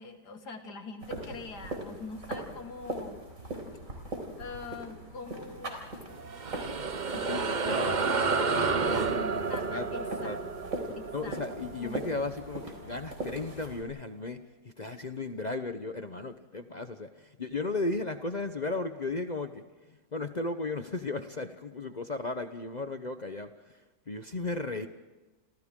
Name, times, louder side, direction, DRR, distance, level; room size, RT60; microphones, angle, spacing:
voice 1, 0.0-3.2 4.4-5.8 7.1-10.7 11.0-11.4 11.8-12.0, left 4 dB, 75° left, 6 dB, 2.4 m, -43 dB
sound 1, 1.0-13.8, right 2 dB, 50° right, 4.4 m, -40 dB
sound 2, 6.1-12.9, right 4 dB, 35° right, 0.8 m, -31 dB
voice 2, 7.3-9.1 9.7-9.9 10.2-10.4 11.1-19.6 20.1-23.8 24.1-24.9, left 3 dB, 35° left, 8 dB, 0.7 m, -35 dB
29.0 x 26.5 x 3.7 m, 1.2 s
omnidirectional pair, 1.8 m